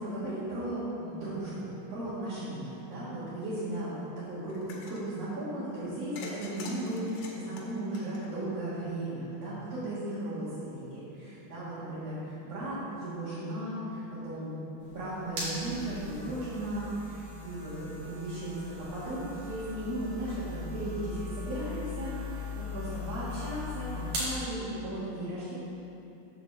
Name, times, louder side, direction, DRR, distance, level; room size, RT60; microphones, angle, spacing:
voice 1, 0.0-4.6 4.9-25.5, right 1 dB, 55° right, -12 dB, 2.6 m, -36 dB
sound 1, 4.5-5.0 6.2-8.7, left 3 dB, 85° left, 2.6 m, -44 dB
sound 2, 14.8-24.4, left 2 dB, 80° right, 3.5 m, -39 dB
8.3 x 4.2 x 6.8 m, 2.8 s
omnidirectional pair, 3.7 m